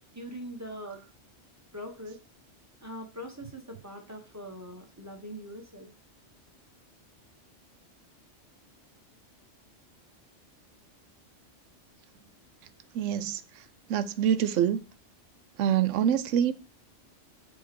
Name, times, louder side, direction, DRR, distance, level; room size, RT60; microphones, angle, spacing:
voice 1, 0.1-1.0 1.7-2.2 2.8-5.9, equal, 15° right, 1.1 m, -42 dB
voice 2, 12.9-13.4 13.9-14.8 15.6-16.5, right 9 dB, 85° right, 0.9 m, -25 dB
6.4 x 3.0 x 5.8 m
omnidirectional pair, 1.2 m